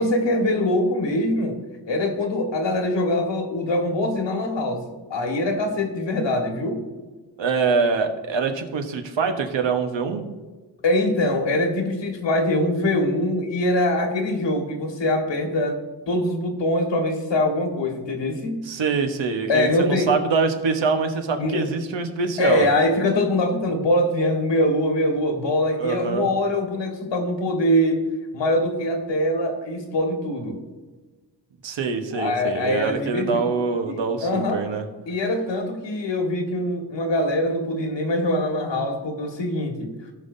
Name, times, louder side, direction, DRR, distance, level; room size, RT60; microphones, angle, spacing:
voice 1, 0.0-1.6 1.9-6.9 10.8-15.8 16.1-18.7 19.5-20.1 21.4-21.6 22.4-28.0 28.3-30.6 32.1-33.5 33.9-34.6 35.1-40.0, left 1 dB, 65° left, 3 dB, 1.7 m, -23 dB
voice 2, 7.4-10.2 18.6-22.7 25.8-26.3 31.6-34.8, right 5 dB, 70° right, 5 dB, 1.2 m, -24 dB
16.5 x 5.6 x 2.7 m, 1.3 s
wide cardioid pair, 130°, 46 cm